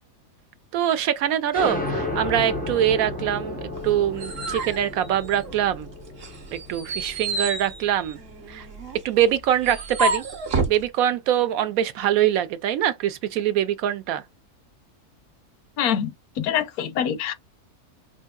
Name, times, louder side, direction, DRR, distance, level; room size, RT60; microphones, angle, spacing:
voice 1, 0.7-5.9 6.5-8.2 8.5-8.7 9.0-10.2 10.7-14.2, right 11 dB, 75° right, 1.0 m, -23 dB
sound 1, 1.5-8.8, left 2 dB, 10° left, 0.4 m, -33 dB
sound 2, 3.8-5.8 6.2-10.8, right 2 dB, 50° right, 1.0 m, -30 dB
voice 2, 15.8-16.1 16.4-17.3, left 9 dB, 80° left, 1.1 m, -24 dB
4.4 x 2.6 x 2.3 m
omnidirectional pair, 1.6 m